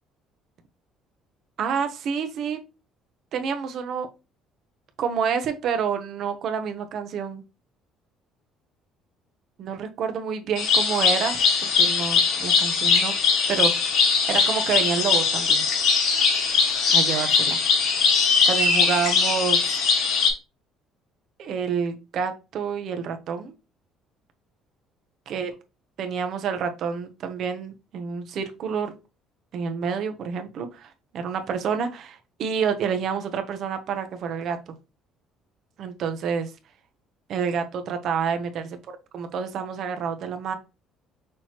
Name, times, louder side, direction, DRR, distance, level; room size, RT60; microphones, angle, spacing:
voice 1, 1.6-2.6 3.3-4.1 5.0-7.4 9.6-11.4 11.8-13.1 13.5-14.0 14.3-15.7 16.9-17.6 18.5-19.8 21.4-23.5 25.3-25.5 26.0-29.0 29.5-34.7 35.8-36.5 37.3-38.8 39.1-40.5, right 6 dB, 50° right, 7 dB, 0.8 m, -28 dB
sound 1, 10.6-20.3, left 5 dB, 65° left, 1.5 m, -21 dB
6.1 x 3.0 x 2.9 m, 0.28 s
cardioid pair, 165°, 0 cm